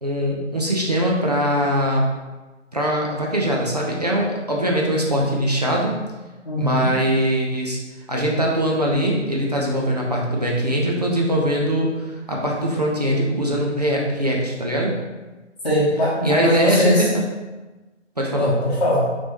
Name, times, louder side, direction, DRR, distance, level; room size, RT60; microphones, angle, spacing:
voice 1, 0.0-2.0 2.7-5.9 6.6-7.8 8.1-15.0 16.2-17.2 18.2-18.5, equal, 35° right, -3 dB, 0.6 m, -22 dB
voice 2, 6.5-6.9 15.6-17.1 18.4-19.0, equal, 35° left, -9 dB, 1.0 m, -20 dB
3.8 x 3.4 x 3.4 m, 1.2 s
figure-of-eight pair, 155°, 37 cm